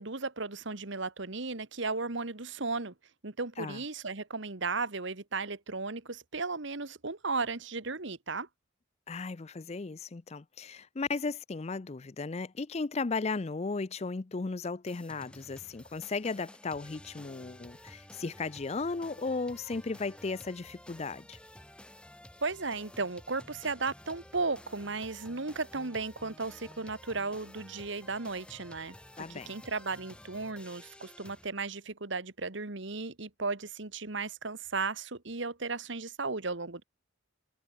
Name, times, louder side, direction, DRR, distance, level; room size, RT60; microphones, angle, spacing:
voice 1, 0.0-2.9 3.2-8.5 22.4-29.0 29.3-36.8, right 3 dB, 60° right, 1.6 m, -35 dB
voice 2, 9.1-21.4 29.2-29.5, left 4 dB, 30° left, 0.5 m, -35 dB
sound 1, 14.9-31.5, left 1 dB, 5° left, 2.5 m, -52 dB
head